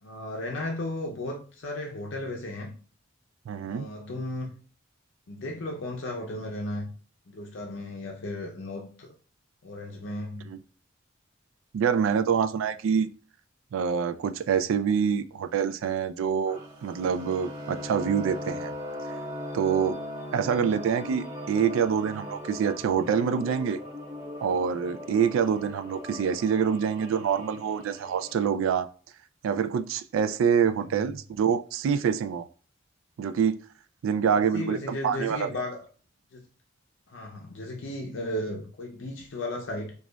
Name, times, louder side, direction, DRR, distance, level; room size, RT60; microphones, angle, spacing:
voice 1, 0.0-2.7 3.6-4.5 5.3-6.9 7.3-9.1 9.6-10.5 30.8-31.1 34.3-35.8 36.3-36.4 37.1-39.9, left 1 dB, 65° left, 0.5 m, -35 dB
voice 2, 3.5-3.9 10.5-10.6 11.7-13.1 13.7-18.7 19.5-19.9 20.3-23.8 24.4-28.9 29.4-32.4 33.2-33.6 34.0-35.6, right 7 dB, 80° right, 0.3 m, -26 dB
sound 1, 16.5-28.4, left 1 dB, 40° right, 0.9 m, -39 dB
4.9 x 2.3 x 2.2 m
head